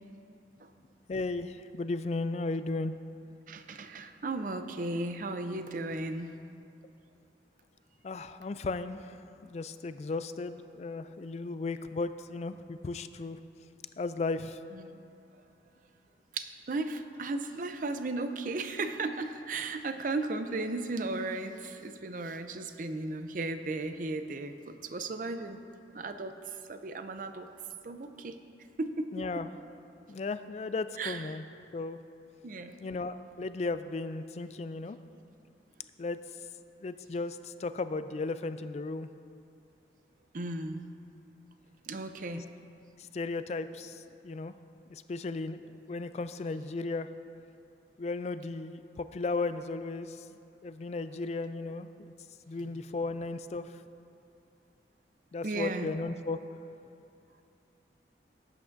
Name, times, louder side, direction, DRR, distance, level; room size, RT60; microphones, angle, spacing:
voice 1, 1.1-2.9 8.0-13.4 14.0-14.6 29.1-29.5 30.1-31.4 31.7-32.0 32.8-35.0 36.0-36.2 36.8-39.1 42.3-42.4 43.0-44.5 44.9-47.1 48.0-50.3 50.6-51.9 52.5-53.8 55.3-56.4, left 3 dB, 35° left, 11 dB, 0.3 m, -35 dB
voice 2, 3.5-6.4 14.7-15.0 16.3-25.6 25.9-26.3 26.7-27.5 27.8-28.4 28.8-29.4 31.0-31.2 32.4-32.9 40.3-40.9 41.9-42.5 55.4-56.0, right 2 dB, 45° right, 8 dB, 0.5 m, -35 dB
18.0 x 8.5 x 2.6 m, 2.6 s
head